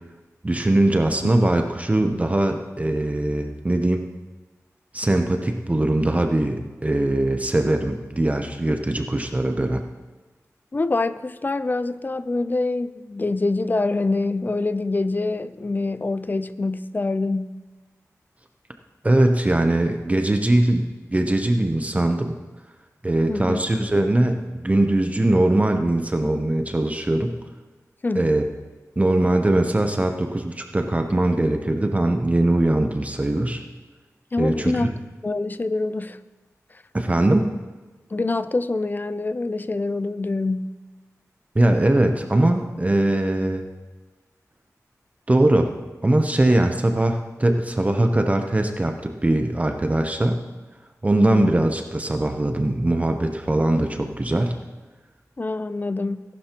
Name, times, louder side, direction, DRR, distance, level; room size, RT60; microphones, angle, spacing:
voice 1, 0.4-4.0 4.9-9.8 19.0-22.3 23.0-27.4 28.1-28.4 29.0-33.6 34.4-34.9 36.9-37.5 41.5-43.6 45.3-45.7 46.0-50.4 51.0-54.5, right 1 dB, 25° right, 5 dB, 0.7 m, -21 dB
voice 2, 10.7-17.5 23.3-23.6 28.0-28.3 34.3-34.9 35.2-36.2 38.1-40.8 51.1-51.6 55.4-56.2, left 3 dB, 35° left, 13 dB, 0.5 m, -25 dB
18.0 x 11.5 x 3.0 m, 1.2 s
wide cardioid pair, 100°, 6 cm